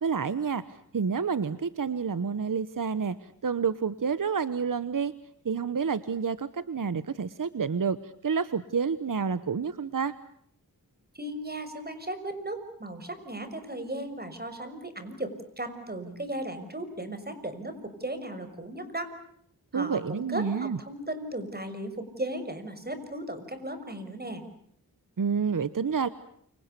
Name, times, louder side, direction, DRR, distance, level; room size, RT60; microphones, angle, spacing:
voice 1, 0.0-5.1 5.4-10.1 19.7-20.8 25.2-26.1, right 6 dB, 60° right, 14 dB, 1.2 m, -29 dB
voice 2, 11.1-19.1 19.7-24.4, right 1 dB, 25° right, 9 dB, 6.1 m, -36 dB
29.5 x 26.5 x 6.9 m, 0.69 s
cardioid pair, 55°, 36 cm